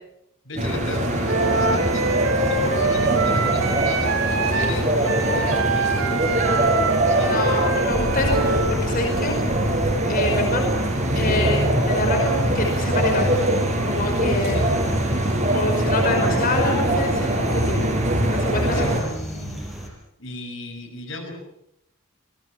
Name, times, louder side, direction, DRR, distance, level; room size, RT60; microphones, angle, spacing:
voice 1, 0.4-2.2 2.4-6.5 7.2-7.4 10.3-10.5 14.5-15.1 18.7-19.8 20.2-21.3, left 2 dB, 60° left, 5 dB, 6.0 m, -35 dB
sound 1, 0.6-19.0, right 1 dB, 35° right, 6.1 m, -22 dB
Wind instrument woodwind instrument, 1.3-8.7, right 4 dB, 70° right, 4.5 m, -25 dB
sound 2, 1.4-19.9, right 1 dB, ahead, 6.0 m, -36 dB
voice 2, 7.2-9.3 10.0-10.7 11.1-13.5 13.9-14.6 15.5-17.9 18.3-19.0, left 2 dB, 40° left, 3 dB, 5.2 m, -26 dB
28.5 x 20.5 x 7.4 m, 0.80 s
head